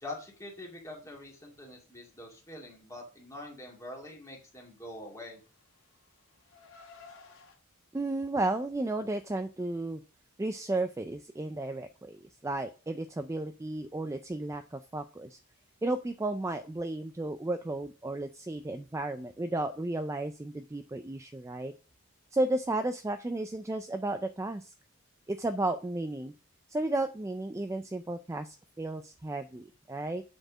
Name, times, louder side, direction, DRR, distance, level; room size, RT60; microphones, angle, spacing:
voice 1, 0.0-5.4, left 1 dB, 15° left, -1 dB, 2.2 m, -44 dB
Car, 5.1-7.6, left 4 dB, 65° left, 2.4 m, -55 dB
voice 2, 7.9-10.0 10.4-15.4 15.8-21.7 22.3-24.7 25.3-26.3 26.7-30.2, right 2 dB, 15° right, 9 dB, 0.3 m, -33 dB
7.8 x 4.4 x 6.1 m, 0.36 s
head